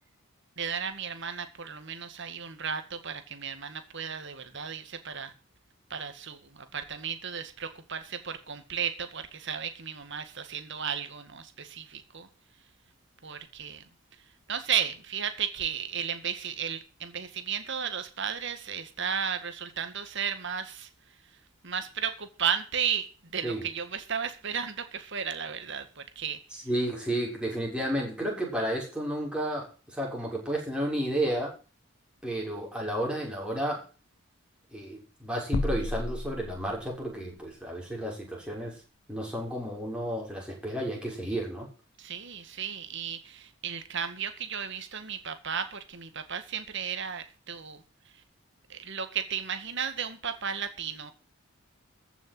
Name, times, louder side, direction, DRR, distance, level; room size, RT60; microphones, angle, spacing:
voice 1, 0.6-5.3 5.9-12.3 13.2-13.8 14.5-20.9 21.6-26.4 42.0-47.8 48.7-51.1, right 7 dB, 60° right, 9 dB, 2.0 m, -34 dB
voice 2, 26.5-31.5 32.2-33.8 34.7-38.8 39.1-41.7, right 1 dB, 5° right, -2 dB, 6.5 m, -32 dB
sound 1, 35.5-37.1, left 2 dB, 75° left, 1.1 m, -32 dB
14.5 x 7.2 x 7.8 m, 0.35 s
head